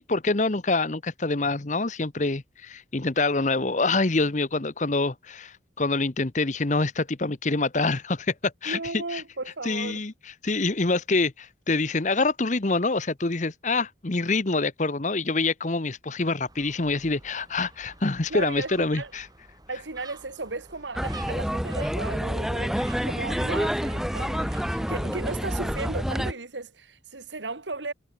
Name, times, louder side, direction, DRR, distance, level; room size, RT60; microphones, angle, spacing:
voice 1, 0.0-9.2 9.6-19.3, left 3 dB, 45° left, 1.1 m, -26 dB
voice 2, 8.7-10.0 18.3-19.1 19.7-27.9, right 3 dB, 90° right, 2.2 m, -35 dB
Gull seagull, 16.5-25.6, right 3 dB, 20° right, 5.6 m, -49 dB
sound 1, 21.0-26.3, equal, ahead, 1.5 m, -28 dB
head